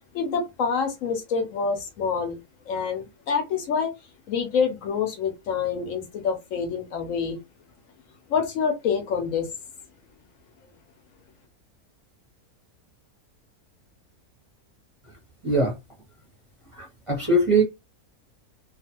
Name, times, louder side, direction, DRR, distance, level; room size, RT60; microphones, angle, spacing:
voice 1, 0.1-2.4 2.7-3.9 4.3-7.4 8.3-9.5, left 6 dB, 70° left, 0.9 m, -26 dB
voice 2, 15.4-15.8 16.7-17.6, right 2 dB, 30° right, 0.7 m, -22 dB
2.4 x 2.4 x 2.8 m
omnidirectional pair, 1.6 m